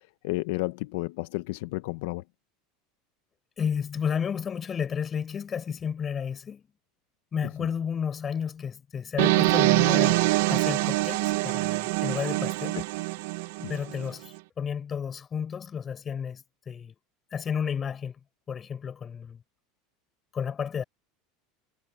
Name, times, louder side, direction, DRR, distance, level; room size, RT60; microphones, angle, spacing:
voice 1, 0.2-2.2 12.7-12.8 13.6-13.7, left 21 dB, 75° left, 0.6 m, -31 dB
voice 2, 3.6-6.7 7.3-12.8 13.7-16.9 17.3-18.2 18.5-19.4 20.3-20.8, left 7 dB, 25° left, 5.8 m, -32 dB
sound 1, 9.2-14.1, right 21 dB, 75° right, 0.8 m, -24 dB
supercardioid pair, 150°, 0 cm